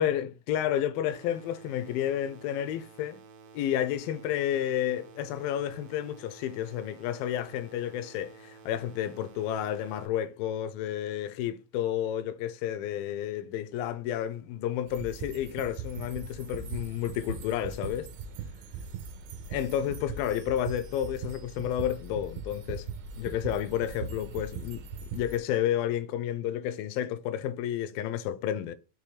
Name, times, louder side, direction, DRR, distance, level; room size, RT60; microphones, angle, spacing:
voice 1, 0.0-3.2 3.5-18.1 19.5-22.9 23.2-24.8 25.1-28.7, left 11 dB, 85° left, 2.4 m, -31 dB
sound 1, 1.1-10.1, right 5 dB, 70° right, 2.7 m, -52 dB
sound 2, 14.9-25.4, right 6 dB, 85° right, 2.8 m, -40 dB
6.7 x 3.4 x 4.8 m
omnidirectional pair, 4.2 m